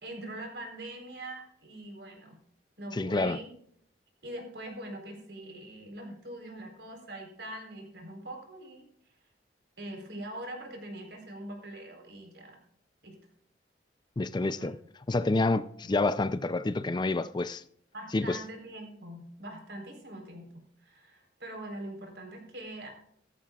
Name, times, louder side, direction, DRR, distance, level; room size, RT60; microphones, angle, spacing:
voice 1, 0.0-2.4 2.8-3.5 4.2-8.9 9.8-12.6 13.0-13.2 14.6-14.7 17.9-22.9, right 1 dB, 70° right, 4.0 m, -43 dB
voice 2, 2.9-3.4 14.2-14.8 15.1-17.6 18.1-18.4, left 2 dB, 25° left, 0.4 m, -28 dB
15.5 x 13.5 x 2.4 m
head